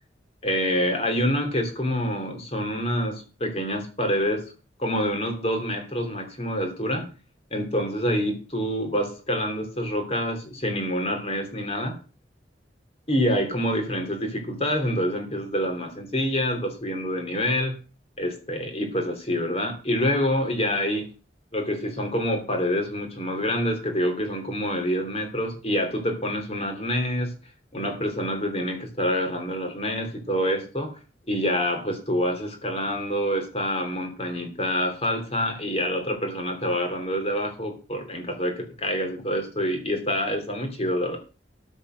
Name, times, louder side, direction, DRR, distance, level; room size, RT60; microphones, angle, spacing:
voice 1, 0.4-4.4 4.8-7.1 7.5-12.0 13.1-17.7 18.2-21.1 21.5-27.3 27.7-30.9 31.3-41.2, equal, 35° left, 4 dB, 3.1 m, -26 dB
14.0 x 5.3 x 6.4 m, 0.34 s
head